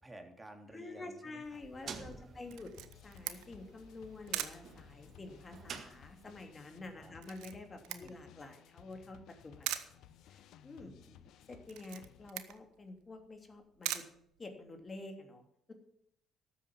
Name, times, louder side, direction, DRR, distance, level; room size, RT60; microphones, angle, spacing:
voice 1, 0.0-2.6 6.9-7.1 7.9-8.1 10.8-11.3, right 1 dB, 20° right, 4 dB, 3.4 m, -54 dB
voice 2, 0.7-2.7 3.0-9.8 10.3-11.0 11.5-14.0 14.4-15.7, left 2 dB, 35° left, 5 dB, 3.0 m, -49 dB
sound 1, 1.4-6.5, right 5 dB, 55° right, 2.0 m, -51 dB
sound 2, 2.4-12.3, left 11 dB, 70° left, 0.8 m, -59 dB
Camera, 2.5-15.0, right 14 dB, 75° right, 1.0 m, -45 dB
13.0 x 8.4 x 7.4 m, 0.72 s
hypercardioid pair, 55°, 0 cm